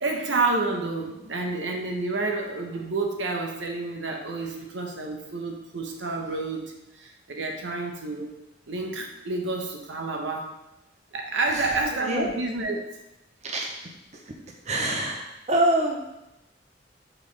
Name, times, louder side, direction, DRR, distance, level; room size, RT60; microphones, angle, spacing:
voice 1, 0.0-8.3 8.7-10.5 11.1-12.8, right 3 dB, 75° right, 2 dB, 0.9 m, -29 dB
voice 2, 14.6-16.0, right 1 dB, 40° right, 0 dB, 0.8 m, -25 dB
5.9 x 5.3 x 3.3 m, 0.90 s
head